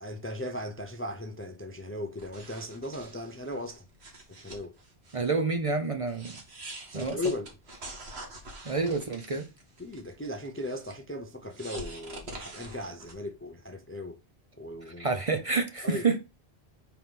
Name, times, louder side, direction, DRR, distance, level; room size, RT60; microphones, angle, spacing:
voice 1, 0.0-3.8 4.3-4.7 6.9-7.6 9.8-14.2 14.6-15.2 15.8-16.1, left 1 dB, 15° left, 0.5 m, -37 dB
sound 1, 2.2-5.3 5.6-5.7 6.1-10.9 11.5-13.1, right 1 dB, 70° right, 1.8 m, -45 dB
voice 2, 5.1-6.4 6.9-7.2 8.6-9.4 15.0-16.2, right 4 dB, 35° right, 0.7 m, -28 dB
4.5 x 4.0 x 5.3 m
omnidirectional pair, 1.1 m